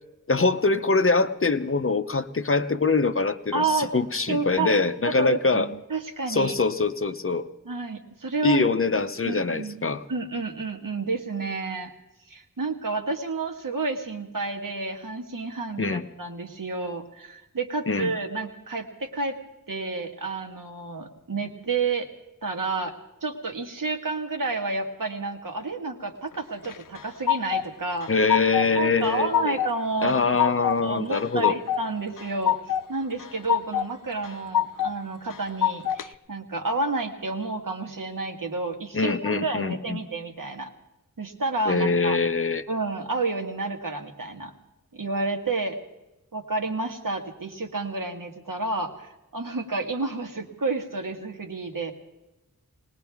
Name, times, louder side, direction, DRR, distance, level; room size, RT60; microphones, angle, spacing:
voice 1, 0.3-5.7 6.3-7.4 8.4-10.0 15.8-16.0 17.9-18.1 28.1-29.6 30.0-31.5 38.9-40.0 41.7-42.7, left 4 dB, 40° left, 10 dB, 0.7 m, -24 dB
voice 2, 3.5-3.9 4.3-4.8 5.1-6.5 7.7-8.7 9.2-9.8 10.1-11.9 12.3-19.4 19.7-22.1 22.4-23.0 23.2-28.1 28.8-40.7 41.2-42.2 42.7-44.5 44.9-45.8 46.3-51.9, right 3 dB, 75° right, 4 dB, 1.8 m, -30 dB
sound 1, 26.6-27.7 28.0-28.7 29.0-29.7 30.1-30.8 31.1-31.8 32.2-32.8 33.2-33.9 34.2-34.9 35.3-36.1, left 10 dB, 75° left, 0.5 m, -25 dB
20.5 x 19.5 x 3.5 m, 0.99 s
wide cardioid pair, 70°, 33 cm